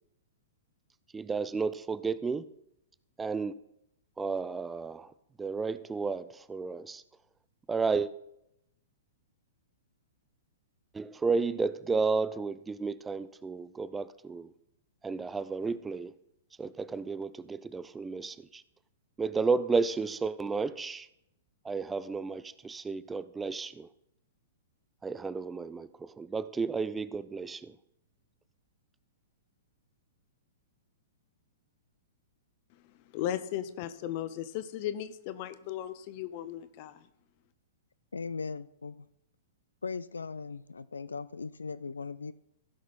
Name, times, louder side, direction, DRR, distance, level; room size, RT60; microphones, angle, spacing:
voice 1, 1.1-2.5 3.2-3.5 4.2-5.1 5.4-7.0 7.7-8.1 10.9-14.5 15.0-16.1 16.6-18.6 19.2-21.1 21.6-23.9 25.0-27.8, right 4 dB, 10° right, 0.4 m, -32 dB
voice 2, 33.1-37.0, left 11 dB, 40° left, 0.8 m, -36 dB
voice 3, 38.1-39.1 39.8-42.3, left 5 dB, 75° left, 0.3 m, -38 dB
16.0 x 6.0 x 4.2 m
figure-of-eight pair, 110°, 0 cm